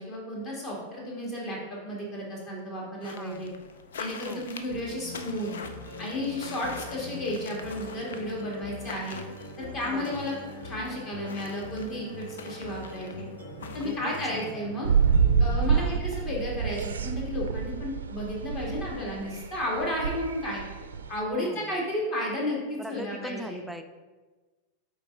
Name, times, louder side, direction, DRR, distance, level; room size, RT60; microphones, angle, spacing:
voice 1, 0.0-3.5 4.0-5.5 6.0-9.2 9.6-10.3 10.6-13.1 13.7-14.9 15.4-20.6 21.1-23.6, left 1 dB, 35° left, -3 dB, 2.0 m, -33 dB
sound 1, 3.0-14.6, left 5 dB, 65° left, 0.5 m, -45 dB
voice 2, 3.0-3.6 4.3-4.5 9.9-10.3 13.8-14.6 15.7-16.0 21.4-21.8 22.8-23.8, equal, 5° right, 6 dB, 0.5 m, -41 dB
sound 2, 4.7-16.6, left 1 dB, 85° left, 1.9 m, -42 dB
sound 3, 14.8-21.2, right 6 dB, 70° right, 0.5 m, -26 dB
8.4 x 3.5 x 3.8 m, 1.3 s
figure-of-eight pair, 90°, 0 cm